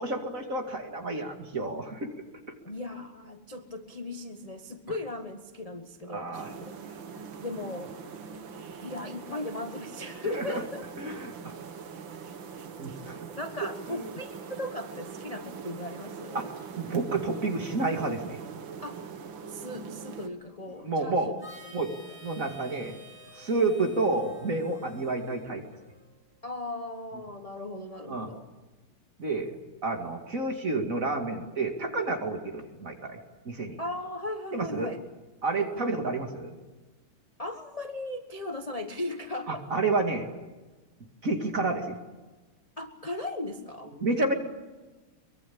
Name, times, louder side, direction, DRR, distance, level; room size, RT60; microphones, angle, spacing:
voice 1, 0.0-2.1 6.1-6.5 10.3-10.6 11.0-11.5 12.8-13.2 13.9-14.0 16.3-18.4 20.8-21.3 21.7-21.9 22.2-23.0 23.3-25.6 28.1-28.3 29.2-29.6 29.8-33.2 33.4-33.8 34.5-34.9 35.4-36.5 39.5-40.3 41.2-42.0 43.9-44.3, right 3 dB, 35° right, 3 dB, 2.7 m, -30 dB
voice 2, 2.6-6.7 7.4-7.9 8.8-10.8 12.1-12.2 13.4-16.5 18.8-19.0 19.5-21.3 21.6-21.8 22.1-22.2 26.4-28.4 33.8-35.0 37.4-39.5 42.8-43.9, left 2 dB, 25° left, 5 dB, 0.9 m, -37 dB
sound 1, 6.3-20.3, right 6 dB, 60° right, 2.1 m, -42 dB
Harmonica, 21.4-26.1, equal, 5° left, 6.8 m, -51 dB
23.5 x 22.5 x 8.7 m, 1.2 s
omnidirectional pair, 2.4 m